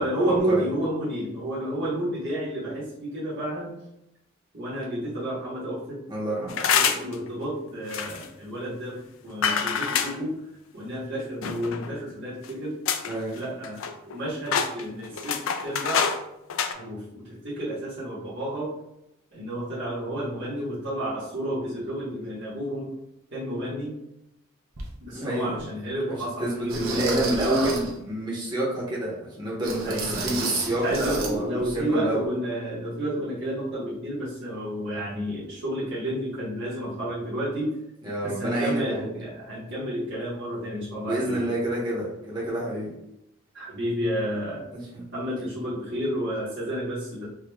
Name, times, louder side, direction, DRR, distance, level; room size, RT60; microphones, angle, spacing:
voice 1, 0.0-3.8 4.5-6.1 6.6-9.0 9.2-10.4 10.7-12.7 13.3-16.1 16.7-18.7 19.3-22.9 23.3-24.0 25.0-27.7 29.8-37.8 38.2-41.5 43.5-44.7 45.1-47.3, right 1 dB, 60° right, -10 dB, 1.2 m, -31 dB
voice 2, 6.1-6.5 13.1-13.4 25.1-25.6 26.4-31.6 31.9-32.2 38.0-39.1 41.0-42.9 44.9-45.0, right 1 dB, 20° right, -6 dB, 0.9 m, -28 dB
sound 1, 6.5-7.1 7.9-8.3 9.4-10.2 11.4-11.9 12.4-12.5 12.9-13.1 13.4-14.2 14.5-16.2 16.5-16.7, left 7 dB, 70° left, 0.4 m, -26 dB
sound 2, 24.8-24.9 25.6-25.7 26.7-28.0 29.6-31.4 31.6-31.8 32.2-32.3, right 4 dB, 75° right, 0.7 m, -33 dB
4.8 x 2.4 x 2.3 m, 0.85 s
head